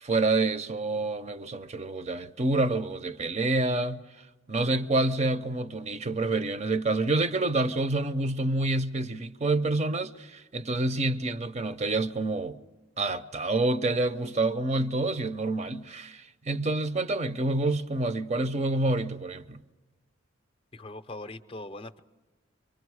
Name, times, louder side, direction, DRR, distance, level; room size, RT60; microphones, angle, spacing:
voice 1, 0.0-4.0 4.5-12.6 13.0-19.6, right 2 dB, 35° right, 0.5 m, -28 dB
voice 2, 20.7-22.0, left 2 dB, 25° left, 0.6 m, -41 dB
24.0 x 23.5 x 4.8 m
head